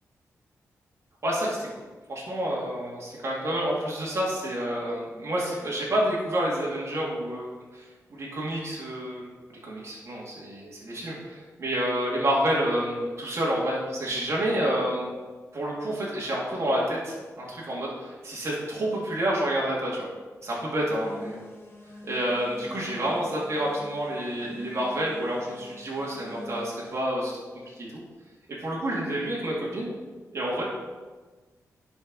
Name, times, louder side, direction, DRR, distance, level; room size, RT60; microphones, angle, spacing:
voice 1, 1.2-1.7 2.1-7.5 7.7-7.8 8.1-15.1 15.5-20.1 20.4-21.3 22.1-27.3 27.7-28.0 28.6-29.9 30.3-30.6, right 1 dB, 50° right, -5 dB, 2.3 m, -29 dB
sound 1, 20.9-27.0, left 2 dB, 40° left, 1.8 m, -46 dB
11.0 x 4.5 x 4.0 m, 1.3 s
cardioid pair, 80°, 6 cm